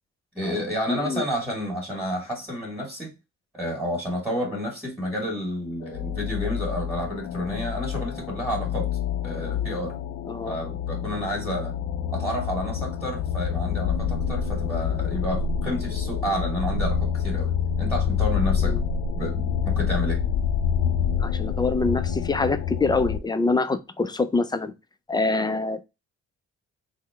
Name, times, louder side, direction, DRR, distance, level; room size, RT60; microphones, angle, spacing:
voice 1, 0.3-3.1 3.5-8.9 9.2-9.9 10.4-11.7 12.1-17.5 17.8-18.7 19.1-20.2, equal, ahead, 1.7 m, -30 dB
voice 2, 0.9-1.3 10.3-10.6 18.6-18.8 21.2-24.7 25.1-25.8, left 3 dB, 15° left, 0.3 m, -25 dB
sound 1, 5.8-23.2, left 7 dB, 90° left, 0.5 m, -27 dB
3.7 x 2.1 x 3.5 m
cardioid pair, 90°, 30 cm